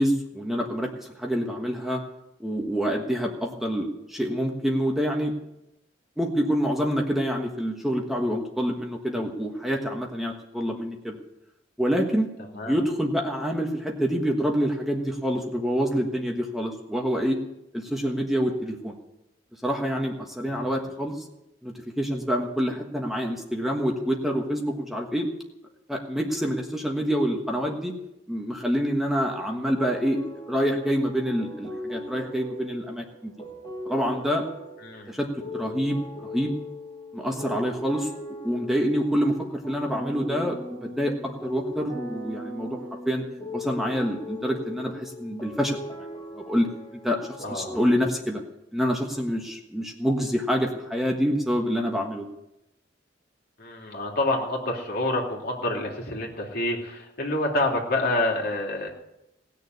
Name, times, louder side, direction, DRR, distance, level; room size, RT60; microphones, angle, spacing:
voice 1, 0.0-2.0 2.4-5.3 6.2-11.2 11.8-12.3 12.7-17.4 17.7-18.9 19.6-21.1 21.6-25.3 25.9-27.9 28.3-30.2 30.5-33.3 33.8-34.4 35.1-35.3 35.5-36.5 37.1-38.1 38.4-39.3 39.7-41.1 41.4-42.8 43.0-43.2 43.5-45.8 46.3-46.7 47.0-47.2 47.5-48.4 48.7-52.3, equal, ahead, 1 dB, 1.4 m, -26 dB
voice 2, 20.5-20.9 34.8-35.2 47.4-47.8 53.6-58.9, left 1 dB, 55° left, 0 dB, 2.9 m, -28 dB
sound 1, 29.8-48.0, left 1 dB, 20° left, 1.9 m, -39 dB
18.5 x 6.8 x 9.5 m, 0.88 s
head